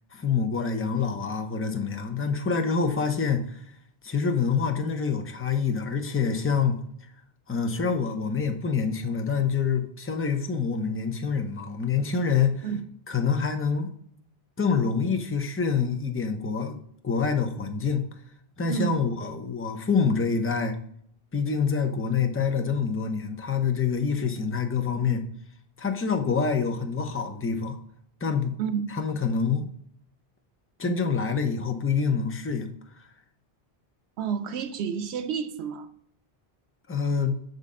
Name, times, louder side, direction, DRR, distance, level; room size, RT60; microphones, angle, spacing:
voice 1, 0.1-3.5 4.0-6.8 7.5-12.7 13.1-13.9 14.6-16.8 17.0-18.1 18.6-20.7 21.3-25.2 25.8-27.8 28.2-28.5 28.9-29.7 30.8-32.7 36.9-37.4, left 5 dB, 20° left, 0.4 m, -26 dB
voice 2, 18.7-19.0 28.6-28.9 34.2-35.9, right 7 dB, 90° right, 0.9 m, -30 dB
6.6 x 4.0 x 3.7 m
omnidirectional pair, 1.1 m